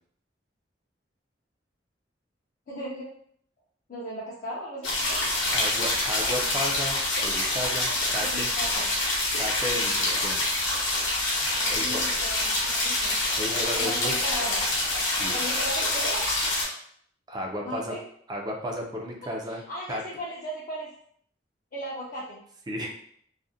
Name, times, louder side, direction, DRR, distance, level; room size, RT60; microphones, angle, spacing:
voice 1, 2.7-3.1 3.9-5.2 8.2-8.9 11.5-13.1 13.7-14.6 15.3-16.2 17.6-18.0 19.5-20.9 21.7-22.4, equal, 45° left, -6 dB, 0.5 m, -36 dB
sound 1, 4.8-16.6, left 2 dB, 80° left, 0.8 m, -26 dB
voice 2, 5.5-7.0 7.2-8.5 9.3-10.4 11.7-12.0 13.3-14.1 15.2-15.4 17.3-17.9 18.3-19.6 19.9-20.0 22.7-22.9, equal, 20° right, 0 dB, 0.4 m, -33 dB
2.4 x 2.1 x 2.6 m, 0.64 s
head